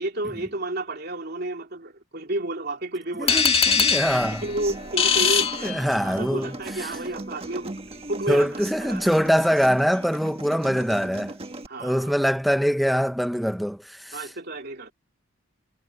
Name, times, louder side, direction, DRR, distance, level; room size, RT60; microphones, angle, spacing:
voice 1, 0.0-3.5 3.9-7.8 8.1-9.1 11.7-12.1 14.1-14.9, right 2 dB, 55° right, 2.9 m, -31 dB
voice 2, 3.2-4.4 5.2-7.0 8.3-11.4 11.8-14.3, equal, ahead, 0.8 m, -24 dB
sound 1, 3.3-6.3, left 6 dB, 30° left, 2.0 m, -22 dB
Human voice / Acoustic guitar, 3.7-11.7, right 2 dB, 30° right, 1.6 m, -38 dB
head